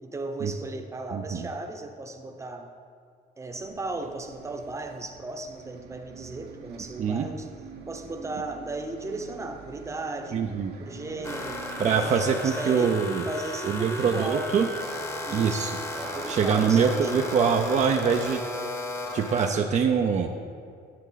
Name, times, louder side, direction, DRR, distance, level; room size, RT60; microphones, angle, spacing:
voice 1, 0.0-2.7 3.4-7.5 7.9-10.5 10.8-13.0 13.3-14.7 15.3-17.3, right 2 dB, 15° right, 4 dB, 0.9 m, -36 dB
voice 2, 1.1-1.5 7.0-7.3 10.3-10.7 11.8-13.3 13.7-14.7 15.3-15.7 16.3-18.4 19.1-20.3, right 6 dB, 45° right, 3 dB, 0.6 m, -24 dB
Bus, 3.6-11.9, right 5 dB, 70° right, 1.0 m, -46 dB
sound 1, 11.2-19.5, left 1 dB, 15° left, 1.0 m, -35 dB
10.0 x 8.2 x 4.0 m, 2.2 s
cardioid pair, 110°, 17 cm